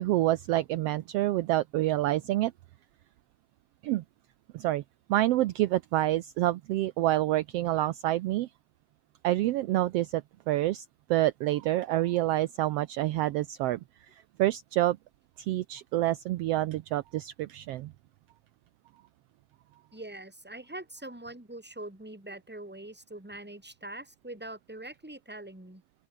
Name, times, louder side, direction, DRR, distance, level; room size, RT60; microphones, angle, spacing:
voice 1, 0.0-2.5 3.8-4.0 4.5-4.8 5.1-8.5 9.2-10.8 11.1-13.8 14.4-15.0 15.4-17.9, right 15 dB, 80° right, 1.4 m, -27 dB
voice 2, 19.9-25.8, right 1 dB, 5° right, 3.1 m, -43 dB
open air
omnidirectional pair, 3.5 m